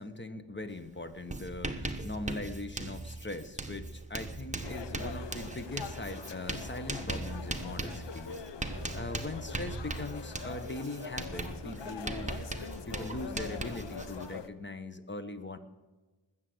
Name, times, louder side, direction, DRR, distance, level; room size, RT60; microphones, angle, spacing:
voice 1, 0.0-8.4 8.9-15.6, left 2 dB, 25° left, 10 dB, 1.2 m, -41 dB
Writing, 0.7-0.9 1.1-14.3, right 2 dB, 15° right, 1.1 m, -39 dB
sound 1, 4.6-14.5, left 6 dB, 65° left, 0.9 m, -44 dB
19.5 x 7.6 x 7.9 m, 1.2 s
wide cardioid pair, 95°, 45 cm